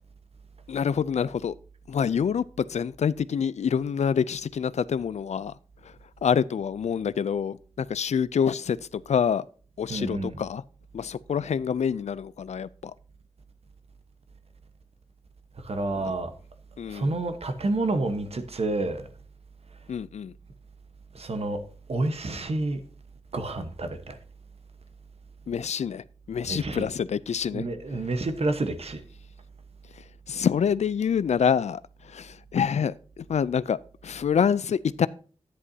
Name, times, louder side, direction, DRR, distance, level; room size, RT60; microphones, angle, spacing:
voice 1, 0.7-1.5 1.9-5.5 5.8-5.9 6.2-9.4 9.8-10.6 10.9-12.9 15.9-16.2 16.8-17.2 19.9-20.3 25.5-27.7 30.3-35.1, left 7 dB, 85° left, 0.4 m, -27 dB
voice 2, 9.9-10.4 15.6-16.3 16.9-19.1 21.1-21.6 21.9-22.8 23.3-24.2 26.5-26.9 27.5-29.0, right 2 dB, 65° right, 1.1 m, -29 dB
11.0 x 9.8 x 2.7 m
wide cardioid pair, 90°, 11 cm